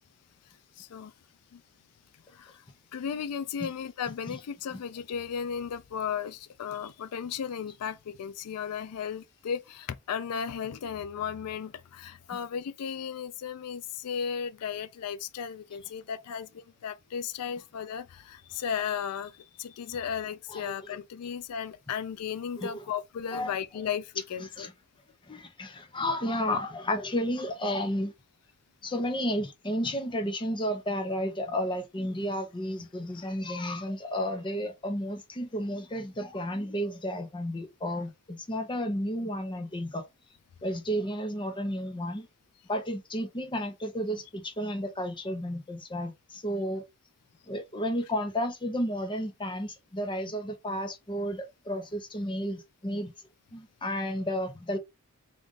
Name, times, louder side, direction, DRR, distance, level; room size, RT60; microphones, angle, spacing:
voice 1, 0.8-1.1 1.5-1.6 2.3-2.6 2.9-24.7, left 7 dB, 90° left, 0.4 m, -35 dB
voice 2, 25.3-28.1 28.8-40.0 40.6-42.3 42.7-46.8 47.5-53.1 53.5-54.8, equal, 20° left, 0.7 m, -32 dB
3.7 x 2.5 x 3.8 m
head